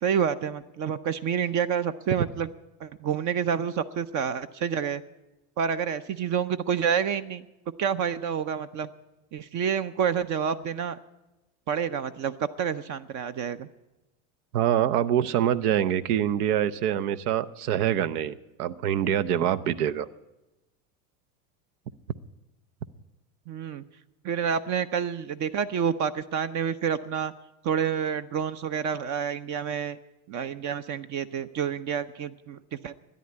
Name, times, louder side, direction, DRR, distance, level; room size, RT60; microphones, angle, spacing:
voice 1, 0.0-2.5 2.8-5.0 5.6-7.4 7.8-8.9 9.3-11.0 11.7-13.7 23.5-23.8 24.2-27.3 27.6-30.0 30.3-32.9, right 7 dB, 40° right, 12 dB, 0.6 m, -28 dB
voice 2, 14.5-20.1, right 10 dB, 80° right, 15 dB, 0.8 m, -25 dB
13.0 x 10.0 x 8.5 m, 1.0 s
supercardioid pair, 110°, 45 cm